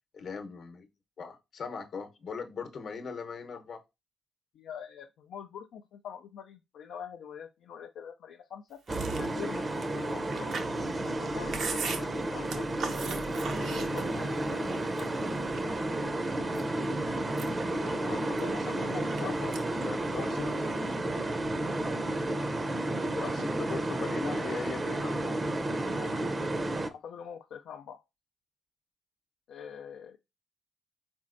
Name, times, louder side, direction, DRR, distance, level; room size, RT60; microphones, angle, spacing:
voice 1, 0.1-0.9 1.2-3.8 19.2-21.2 23.0-25.4, left 5 dB, 60° left, 0.9 m, -39 dB
voice 2, 4.5-8.8 9.1-10.5 11.0-13.1 13.6-16.6 17.7-19.5 20.3-20.4 26.0-26.2 26.9-28.0 29.5-30.2, left 8 dB, 80° left, 0.4 m, -45 dB
sound 1, 8.9-26.9, right 1 dB, 30° right, 0.6 m, -32 dB
Chewing mastication, 8.9-14.4 14.7-15.8 16.3-16.9 17.2-19.2 19.5-19.9 20.1-21.0, right 5 dB, 75° right, 0.7 m, -39 dB
4.3 x 4.1 x 2.5 m
cardioid pair, 70°, 0 cm